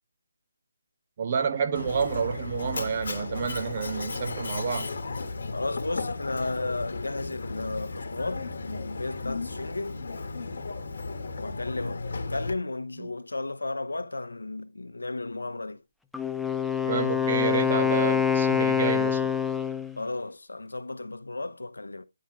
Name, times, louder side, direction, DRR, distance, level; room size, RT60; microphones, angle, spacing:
voice 1, 1.2-4.9 13.0-13.1 16.9-19.3, right 6 dB, 35° right, 1.0 m, -29 dB
Mechanisms, 1.8-12.5, left 3 dB, 55° left, 1.2 m, -35 dB
voice 2, 5.5-10.0 11.4-15.8 20.0-22.0, left 2 dB, 90° left, 0.8 m, -34 dB
Wind instrument woodwind instrument, 16.1-20.0, left 7 dB, ahead, 0.3 m, -25 dB
9.5 x 3.6 x 4.5 m
figure-of-eight pair, 160°, 0 cm